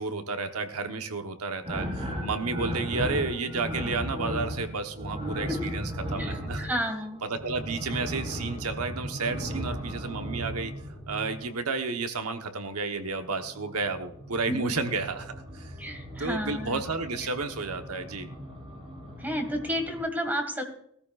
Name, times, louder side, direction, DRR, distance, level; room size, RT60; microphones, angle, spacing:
voice 1, 0.0-6.7 7.2-10.7 11.1-15.7 16.2-18.3, right 4 dB, 75° right, 6 dB, 1.1 m, -32 dB
sound 1, 1.6-11.6 13.1-20.0, equal, 25° right, 3.4 m, -36 dB
voice 2, 6.2-7.2 14.5-14.7 15.8-16.8 19.2-20.6, equal, 10° right, 4 dB, 1.8 m, -31 dB
18.5 x 13.5 x 2.4 m, 0.70 s
head